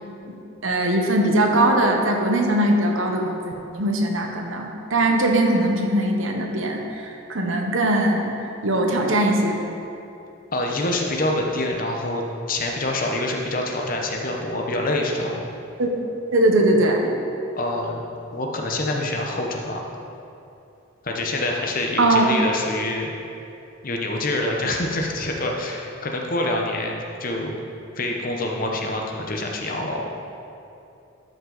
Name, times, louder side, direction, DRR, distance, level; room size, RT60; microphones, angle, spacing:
voice 1, 0.6-8.4 8.6-9.6 15.8-15.9 16.3-17.1 22.0-22.3, right 1 dB, 75° right, 2 dB, 1.0 m, -20 dB
voice 2, 10.5-15.5 17.6-18.0 18.3-19.9 21.0-23.1 23.8-27.5 28.0-30.0, left 1 dB, 45° left, 1 dB, 0.9 m, -26 dB
12.5 x 5.3 x 4.0 m, 2.7 s
head